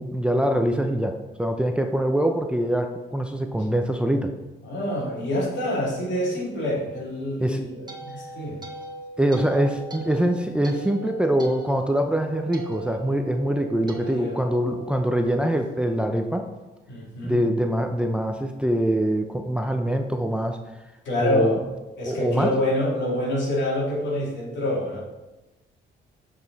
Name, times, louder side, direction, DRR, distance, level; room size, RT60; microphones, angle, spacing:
voice 1, 0.0-4.3 7.4-7.6 9.2-16.4 17.2-20.6 21.2-21.6 22.1-22.5, right 1 dB, 5° right, 4 dB, 0.6 m, -24 dB
voice 2, 4.6-8.6 13.8-14.4 16.9-17.4 21.0-21.6 22.0-25.0, left 1 dB, 65° left, -3 dB, 2.6 m, -26 dB
sound 1, 7.3-15.7, right 2 dB, 20° right, 1.1 m, -41 dB
7.6 x 5.1 x 4.1 m, 1.0 s
cardioid pair, 90°, 20 cm